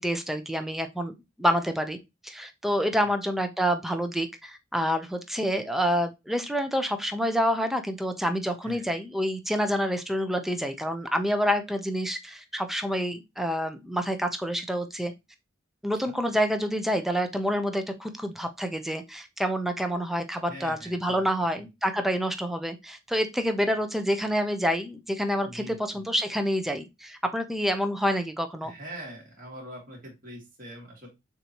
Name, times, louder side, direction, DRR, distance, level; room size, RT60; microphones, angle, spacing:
voice 1, 0.0-2.0 2.2-15.1 15.8-28.7, equal, ahead, 6 dB, 0.6 m, -28 dB
voice 2, 20.5-21.3 25.4-26.1 28.6-31.1, right 1 dB, 45° right, -1 dB, 2.3 m, -43 dB
6.6 x 2.7 x 2.9 m, 0.22 s
head